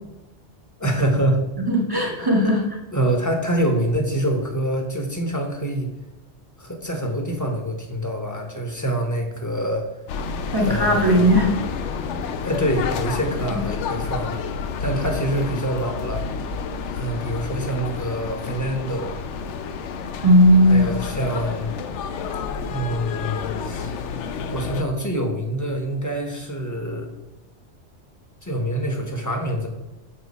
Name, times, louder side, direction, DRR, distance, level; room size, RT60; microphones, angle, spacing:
voice 1, 0.8-1.4 2.9-5.9 6.6-9.8 10.6-11.3 12.4-14.3 14.8-16.2 16.9-19.1 20.7-21.7 22.7-24.0 24.5-27.1 28.4-29.7, right 1 dB, 15° left, 3 dB, 0.9 m, -25 dB
voice 2, 1.7-2.8 10.5-11.5 13.5-13.6 20.2-20.9, equal, 20° right, 0 dB, 0.9 m, -17 dB
sound 1, 10.1-24.8, left 5 dB, 85° left, 0.9 m, -30 dB
6.7 x 4.6 x 4.1 m, 1.0 s
omnidirectional pair, 1.2 m